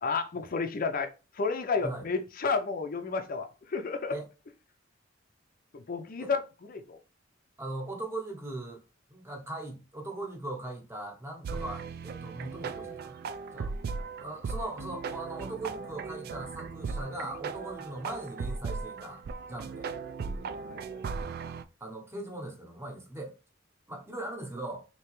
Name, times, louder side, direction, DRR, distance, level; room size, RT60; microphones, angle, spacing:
voice 1, 0.0-4.2 5.7-6.4 6.7-7.0 20.4-21.0, left 4 dB, 45° left, 0.5 m, -32 dB
voice 2, 7.6-8.8 9.1-13.2 13.5-13.7 14.2-19.2 19.5-19.9 21.8-23.3 23.9-24.8, right 2 dB, 15° right, 0.8 m, -39 dB
sound 1, 11.4-21.6, right 5 dB, 55° right, 0.3 m, -37 dB
3.3 x 2.8 x 3.0 m
head